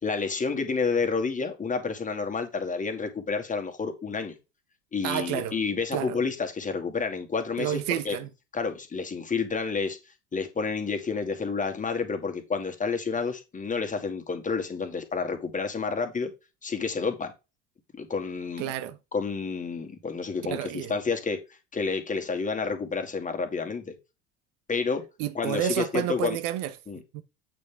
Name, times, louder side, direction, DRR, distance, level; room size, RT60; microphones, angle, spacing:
voice 1, 0.0-4.4 4.9-7.8 8.0-8.2 8.5-10.0 10.3-16.3 16.6-17.3 17.9-18.6 19.1-21.4 21.7-23.9 24.7-25.0 25.3-26.4 26.9-27.0, left 4 dB, 20° left, 2.2 m, -29 dB
voice 2, 5.0-5.6 5.9-6.2 7.6-8.3 18.6-19.0 20.4-20.9 25.2-26.7 27.1-27.2, right 11 dB, 55° right, 1.0 m, -30 dB
8.8 x 5.1 x 3.5 m
hypercardioid pair, 70°, 36 cm